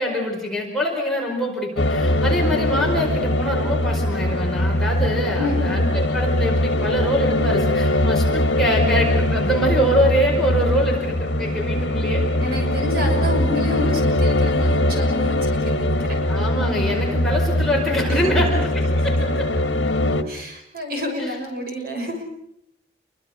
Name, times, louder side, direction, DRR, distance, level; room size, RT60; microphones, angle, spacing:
voice 1, 0.0-12.2 16.3-19.5 21.7-22.1, equal, ahead, -2 dB, 4.9 m, -24 dB
sound 1, 1.8-20.2, left 1 dB, 65° left, 1.9 m, -21 dB
voice 2, 5.4-5.7 12.4-16.2 18.1-18.6 18.9-19.2 20.3-22.2, left 1 dB, 50° right, 2 dB, 6.4 m, -29 dB
28.5 x 23.5 x 6.6 m, 0.75 s
head